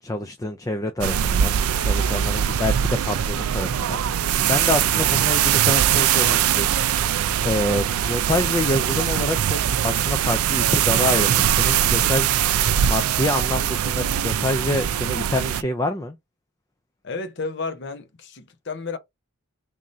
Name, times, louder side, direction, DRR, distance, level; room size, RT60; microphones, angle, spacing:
voice 1, 0.0-12.4 12.8-16.2, left 1 dB, 15° left, 0.3 m, -27 dB
sound 1, 1.0-15.6, right 9 dB, 85° right, 0.4 m, -21 dB
voice 2, 17.0-19.0, left 4 dB, 55° left, 0.7 m, -32 dB
3.5 x 2.7 x 3.1 m
head